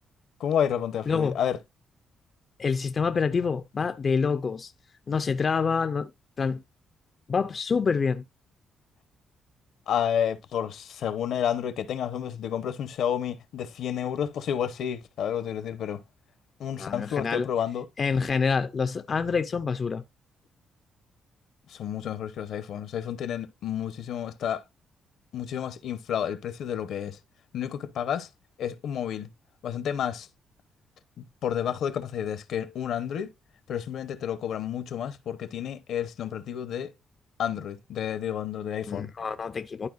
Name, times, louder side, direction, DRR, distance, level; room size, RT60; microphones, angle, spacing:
voice 1, 0.4-1.6 9.9-16.0 16.6-17.9 21.7-24.6 25.3-27.2 27.5-28.3 28.6-29.3 29.6-30.3 31.2-33.3 33.7-36.9 37.4-39.1, left 9 dB, 70° left, 0.8 m, -30 dB
voice 2, 1.1-1.4 2.6-4.7 5.1-6.1 6.4-6.6 7.3-8.2 16.8-17.5 18.0-20.0 38.9-39.9, left 5 dB, 35° left, 0.4 m, -27 dB
12.0 x 4.5 x 2.4 m
cardioid pair, 150°, 0 cm